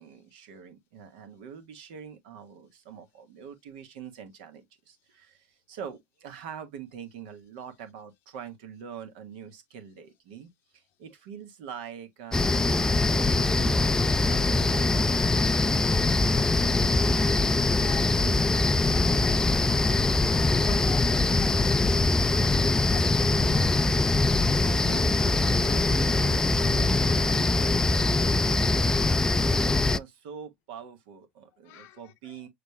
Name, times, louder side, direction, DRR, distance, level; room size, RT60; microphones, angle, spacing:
voice 1, 0.0-10.5 11.0-15.3 15.6-15.8 16.1-16.5 24.5-28.8 29.3-32.5, right 7 dB, 70° right, 1.2 m, -44 dB
sound 1, 12.3-30.0, left 2 dB, 15° left, 0.3 m, -23 dB
voice 2, 18.9-19.9 20.5-23.8 31.7-32.4, left 11 dB, 60° left, 0.7 m, -46 dB
6.6 x 3.3 x 2.2 m
hypercardioid pair, 70°, 5 cm